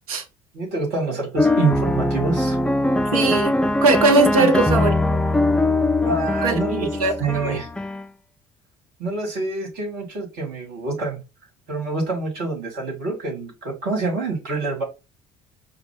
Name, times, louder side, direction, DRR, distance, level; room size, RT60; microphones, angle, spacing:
voice 1, 0.5-2.6 4.3-4.6 6.0-6.9 7.2-7.7 9.0-11.2 11.7-14.8, right 3 dB, 60° right, 2.1 m, -26 dB
sound 1, 1.4-8.1, left 2 dB, 5° left, 0.3 m, -21 dB
voice 2, 3.1-3.5 3.8-5.2 6.4-7.6, right 3 dB, 80° right, 0.7 m, -20 dB
4.7 x 2.2 x 3.6 m
hypercardioid pair, 55°, 18 cm